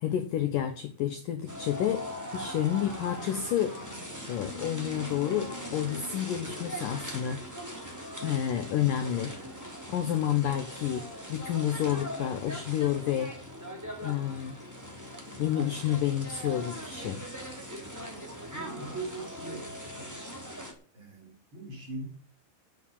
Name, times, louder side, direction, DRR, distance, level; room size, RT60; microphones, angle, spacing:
voice 1, 0.0-2.1 2.3-3.8 4.3-7.4 8.2-9.3 9.9-13.3 14.0-14.6 15.4-17.3, left 10 dB, 80° left, 7 dB, 1.9 m, -29 dB
sound 1, 1.5-20.7, equal, 5° right, 2.0 m, -40 dB
voice 2, 18.5-20.2 20.9-22.1, right 2 dB, 30° right, 0 dB, 4.0 m, -41 dB
9.8 x 8.0 x 8.7 m, 0.42 s
omnidirectional pair, 5.4 m